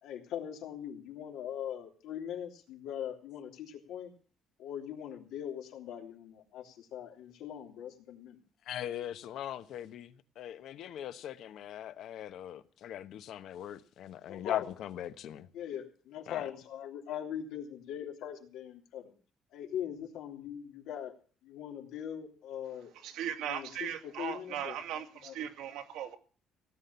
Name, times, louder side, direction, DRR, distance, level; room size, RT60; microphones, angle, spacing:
voice 1, 0.0-4.1 4.6-8.4 14.3-14.7 15.5-19.1 19.5-21.1 21.4-22.9 23.5-24.7 25.2-25.3, left 9 dB, 85° left, 3.2 m, -41 dB
voice 2, 8.6-15.5 16.3-16.5, left 11 dB, 65° left, 1.1 m, -40 dB
voice 3, 22.9-26.2, right 9 dB, 90° right, 2.5 m, -38 dB
17.5 x 9.4 x 6.9 m
cardioid pair, 150°, 0 cm